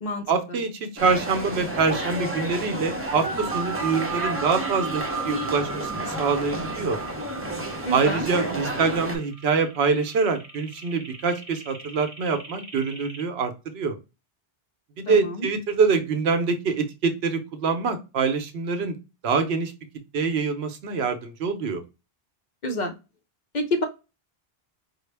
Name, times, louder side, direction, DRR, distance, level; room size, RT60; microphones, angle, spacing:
voice 1, 0.3-7.0 7.9-14.0 15.0-19.0 19.2-19.7 20.1-21.8, right 4 dB, 85° right, 7 dB, 0.9 m, -25 dB
sound 1, 1.0-9.2, right 1 dB, 15° right, 0.6 m, -31 dB
sound 2, 3.2-13.2, right 5 dB, 40° right, 0.8 m, -36 dB
voice 2, 7.8-8.3 15.1-15.5 22.6-22.9 23.5-23.8, left 1 dB, 50° left, 5 dB, 0.8 m, -27 dB
4.6 x 2.0 x 3.2 m, 0.27 s
omnidirectional pair, 1.0 m